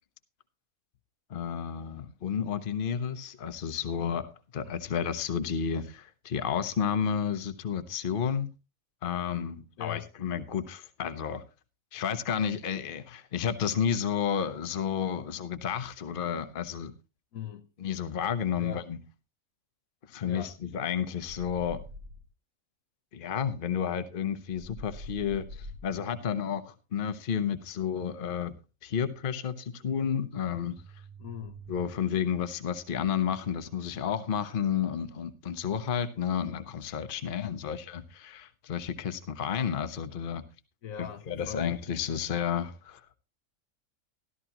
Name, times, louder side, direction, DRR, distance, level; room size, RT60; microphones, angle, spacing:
voice 1, 1.3-8.5 9.0-11.4 11.9-16.9 17.8-19.0 20.1-21.8 23.1-28.5 28.8-30.8 31.7-40.4 41.0-43.0, left 8 dB, 45° left, 1.0 m, -31 dB
voice 2, 4.6-5.0 9.8-10.1 17.3-17.7 18.5-18.8 20.2-20.5 31.2-31.6 40.8-41.7, left 9 dB, 80° left, 1.4 m, -41 dB
sound 1, 21.3-22.3 24.5-26.1 30.3-31.9, equal, 85° right, 1.5 m, -45 dB
14.0 x 12.5 x 2.9 m
omnidirectional pair, 1.4 m